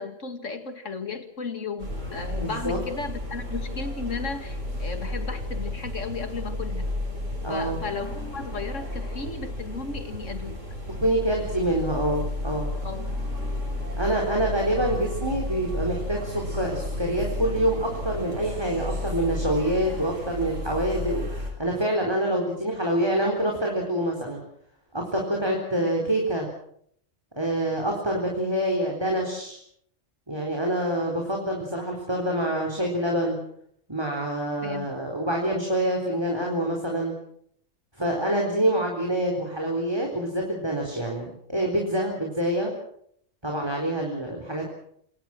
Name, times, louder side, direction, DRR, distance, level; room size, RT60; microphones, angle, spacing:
voice 1, 0.0-6.9 7.5-10.6 12.8-13.2 14.0-14.4 25.8-25.9 34.6-35.0, left 4 dB, 75° left, 8 dB, 2.5 m, -35 dB
sound 1, 1.8-21.5, left 1 dB, 75° right, 7.2 m, -32 dB
voice 2, 2.4-2.8 7.4-7.8 11.0-12.7 14.0-21.2 21.6-24.4 24.9-26.5 27.4-29.6 30.3-33.4 33.9-37.1 38.0-42.7 43.4-44.7, right 1 dB, 20° right, 0 dB, 4.1 m, -26 dB
27.0 x 22.0 x 6.1 m, 0.67 s
omnidirectional pair, 1.3 m